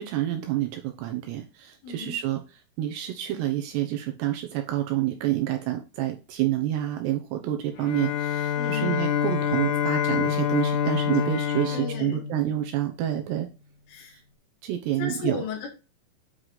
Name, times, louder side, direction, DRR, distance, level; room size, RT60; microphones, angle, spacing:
voice 1, 0.0-2.4 2.8-13.5 14.6-15.4, right 13 dB, 75° right, 5 dB, 2.7 m, -28 dB
voice 2, 1.8-2.2 8.6-9.0 11.6-12.2 13.9-14.2 14.9-15.7, left 6 dB, 90° left, -3 dB, 4.7 m, -35 dB
Bowed string instrument, 7.8-13.0, left 8 dB, 70° left, 3.3 m, -27 dB
9.5 x 4.7 x 4.0 m, 0.30 s
omnidirectional pair, 5.5 m